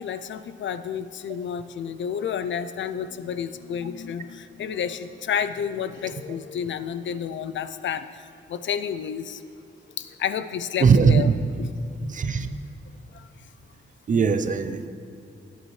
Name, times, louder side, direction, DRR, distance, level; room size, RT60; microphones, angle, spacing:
voice 1, 0.0-8.2 8.5-9.4 10.0-11.3 13.1-13.2, left 8 dB, 80° left, 12 dB, 0.5 m, -30 dB
voice 2, 10.8-11.3 12.0-12.5 14.1-14.9, right 5 dB, 40° right, 9 dB, 0.5 m, -19 dB
16.0 x 9.3 x 3.2 m, 2.6 s
wide cardioid pair, 175°, 19 cm